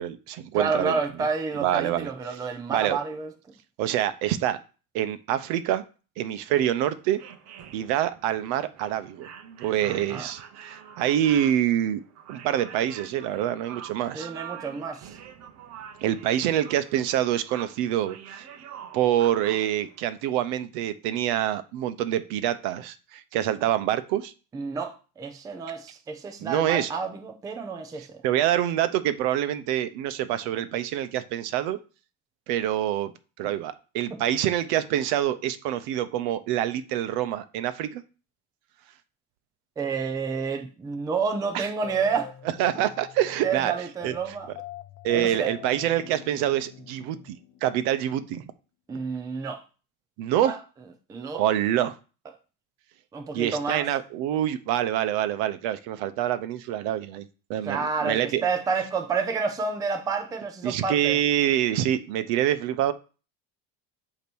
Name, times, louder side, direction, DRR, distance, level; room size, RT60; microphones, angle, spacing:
voice 1, 0.0-1.0 1.6-2.4 2.7-3.0 3.8-4.6 4.9-5.8 6.2-7.2 7.7-9.3 9.6-12.0 12.3-14.3 16.0-18.5 18.9-24.3 26.4-26.9 28.2-31.8 32.5-33.1 33.4-38.0 41.5-41.6 42.6-43.7 44.0-44.2 45.0-48.4 50.2-50.5 51.3-51.9 53.3-58.4 60.6-62.9, right 11 dB, 80° right, 0.8 m, -26 dB
voice 2, 0.5-3.3 9.8-10.3 14.1-15.2 24.5-28.2 34.1-34.2 39.8-42.3 43.4-44.5 45.1-45.5 48.9-49.6 50.4-50.6 51.1-51.4 53.1-53.9 57.6-61.2, right 5 dB, 10° right, 0.4 m, -29 dB
sound 1, 6.5-20.6, right 9 dB, 40° right, 0.7 m, -46 dB
sound 2, 41.8-48.0, left 11 dB, 55° left, 0.8 m, -44 dB
8.5 x 2.9 x 6.0 m
cardioid pair, 170°, 39 cm